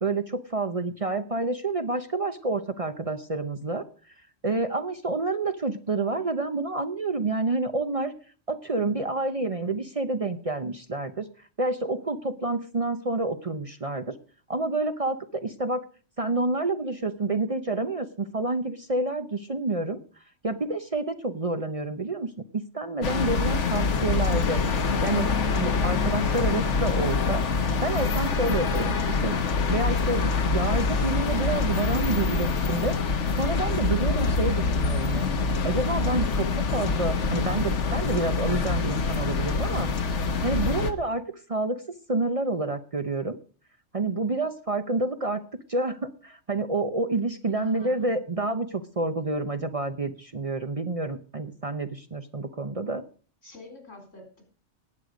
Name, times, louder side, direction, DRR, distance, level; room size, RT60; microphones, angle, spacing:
voice 1, 0.0-3.8 4.4-8.1 8.5-11.3 11.6-14.1 14.5-15.8 16.2-20.0 20.4-25.3 25.6-29.4 29.7-32.9 33.4-35.3 35.6-39.9 40.4-41.8 42.1-43.4 43.9-45.4 45.7-53.0, right 2 dB, 35° right, 9 dB, 0.7 m, -28 dB
sound 1, 23.0-40.9, left 4 dB, 70° left, 1.5 m, -25 dB
voice 2, 47.6-48.2 53.4-54.4, left 2 dB, 90° left, 4 dB, 4.6 m, -45 dB
18.0 x 8.1 x 5.1 m, 0.41 s
omnidirectional pair, 1.3 m